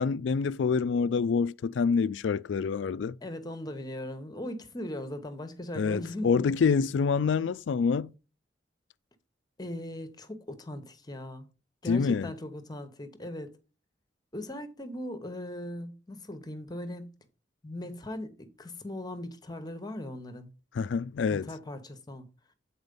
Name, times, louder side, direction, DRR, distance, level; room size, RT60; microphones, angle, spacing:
voice 1, 0.0-3.2 5.8-8.1 11.9-12.3 20.8-21.5, left 5 dB, 75° left, 0.4 m, -26 dB
voice 2, 3.2-6.6 9.6-11.5 11.8-13.6 14.3-17.3 17.6-20.5 21.3-22.3, left 1 dB, 20° left, 1.0 m, -39 dB
8.0 x 4.3 x 5.3 m
head